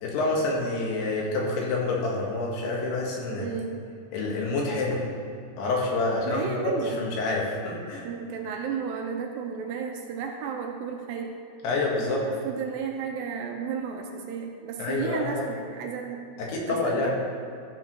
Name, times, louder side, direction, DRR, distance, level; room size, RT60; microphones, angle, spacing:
voice 1, 0.0-3.5 4.1-5.0 5.6-8.1 11.6-12.2 14.8-15.4 16.4-17.1, left 2 dB, 85° left, -3 dB, 3.6 m, -27 dB
voice 2, 3.4-3.8 6.3-7.0 8.0-11.3 12.1-16.2 16.7-17.1, right 6 dB, 75° right, 2 dB, 2.3 m, -33 dB
13.5 x 4.8 x 5.3 m, 2.4 s
omnidirectional pair, 4.5 m